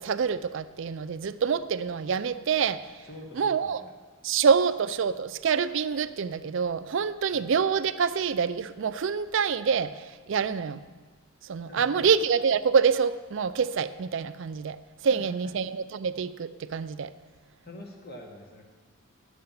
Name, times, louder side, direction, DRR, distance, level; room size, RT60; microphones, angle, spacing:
voice 1, 0.0-3.0 3.4-3.8 4.2-10.8 11.4-14.8 15.0-17.1, right 6 dB, 60° right, 13 dB, 0.4 m, -26 dB
voice 2, 3.0-3.9 7.3-7.4 11.6-12.1 15.1-15.5 17.6-18.6, left 1 dB, 45° left, 2 dB, 1.3 m, -45 dB
11.5 x 6.7 x 5.5 m, 1.4 s
head